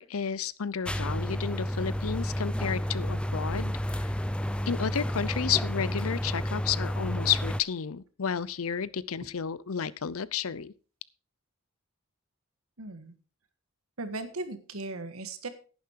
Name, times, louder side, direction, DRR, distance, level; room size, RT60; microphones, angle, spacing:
voice 1, 0.0-4.1 4.7-10.7, left 7 dB, 80° left, 19 dB, 0.6 m, -31 dB
sound 1, 0.9-7.6, equal, 5° left, 0.5 m, -31 dB
voice 2, 12.8-13.1 14.0-15.5, right 2 dB, 85° right, 10 dB, 1.7 m, -37 dB
10.5 x 10.5 x 4.6 m, 0.37 s
head